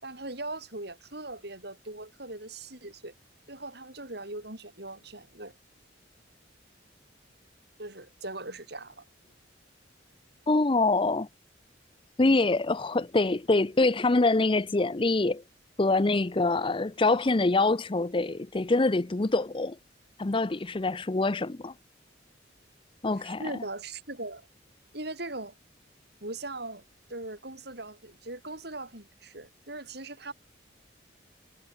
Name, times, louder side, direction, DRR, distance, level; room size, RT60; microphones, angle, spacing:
voice 1, 0.0-3.1 3.5-5.5 7.8-9.0 23.2-24.5 24.9-25.5 26.2-26.8 27.1-30.3, right 2 dB, 55° right, 7.3 m, -40 dB
voice 2, 10.5-11.3 12.2-15.4 15.8-19.8 20.2-21.7 23.0-23.5, left 2 dB, 25° left, 0.6 m, -25 dB
head